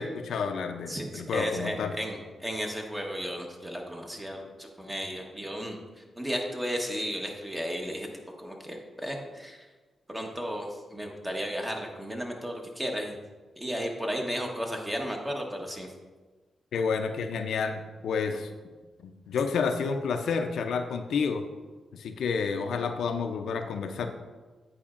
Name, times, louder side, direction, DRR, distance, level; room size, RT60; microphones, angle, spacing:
voice 1, 0.0-1.9 16.7-18.5 19.0-21.4 21.9-24.1, left 5 dB, 80° left, 6 dB, 0.4 m, -30 dB
voice 2, 0.9-5.8 6.2-8.1 8.4-9.7 10.1-13.2 13.6-15.9, equal, 15° right, 1 dB, 1.0 m, -34 dB
8.5 x 4.7 x 2.5 m, 1.3 s
cardioid pair, 70°, 0 cm